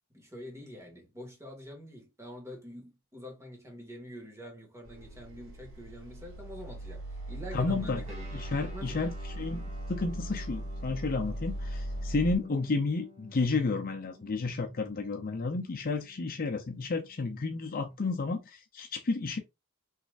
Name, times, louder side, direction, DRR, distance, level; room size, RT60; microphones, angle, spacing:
voice 1, 0.1-8.3 8.7-9.1, equal, 15° right, 1.8 m, -45 dB
sound 1, 4.8-12.3, right 1 dB, 60° right, 1.6 m, -39 dB
voice 2, 7.5-8.0 8.3-19.4, left 3 dB, 40° left, 0.6 m, -32 dB
Guitar, 8.0-18.0, left 1 dB, 30° right, 1.4 m, -54 dB
5.7 x 3.2 x 2.5 m
head